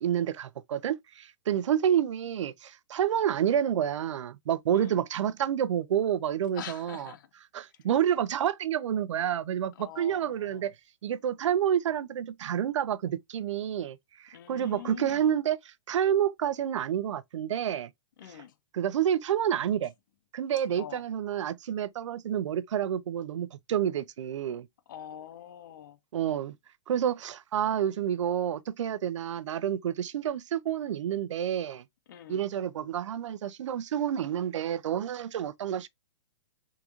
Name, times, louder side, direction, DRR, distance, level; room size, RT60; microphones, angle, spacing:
voice 1, 0.0-7.1 7.5-10.7 11.0-14.0 14.2-15.6 15.9-17.9 18.7-19.9 20.3-24.7 26.1-26.6 26.9-31.8 32.3-35.9, right 9 dB, 80° right, 0.4 m, -29 dB
voice 2, 4.7-5.0 6.5-7.3 7.7-7.8 9.7-10.7 14.3-15.3 18.2-18.5 20.7-21.0 24.9-26.0 32.1-32.5, left 10 dB, 40° left, 0.5 m, -45 dB
3.7 x 2.3 x 2.9 m
hypercardioid pair, 170°, 15 cm